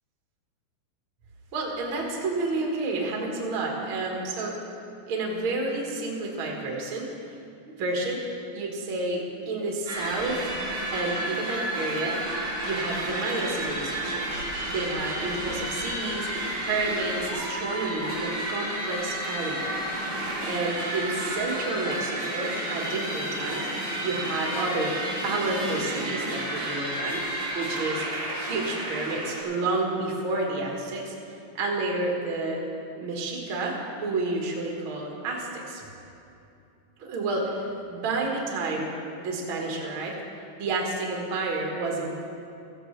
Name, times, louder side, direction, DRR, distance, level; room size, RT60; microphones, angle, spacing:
voice 1, 1.5-4.5 5.1-7.1 7.7-8.2 8.5-10.5 10.9-12.2 12.6-14.3 14.7-16.3 16.6-19.8 20.4-23.7 24.0-24.9 25.2-28.0 28.3-31.1 31.5-32.6 33.0-35.8 37.0-38.9 39.2-40.2 40.6-42.2, right 2 dB, 85° right, -1 dB, 1.1 m, -30 dB
sound 1, 9.9-29.4, right 1 dB, 25° right, 3.2 m, -31 dB
16.0 x 15.0 x 3.3 m, 2.7 s
omnidirectional pair, 5.0 m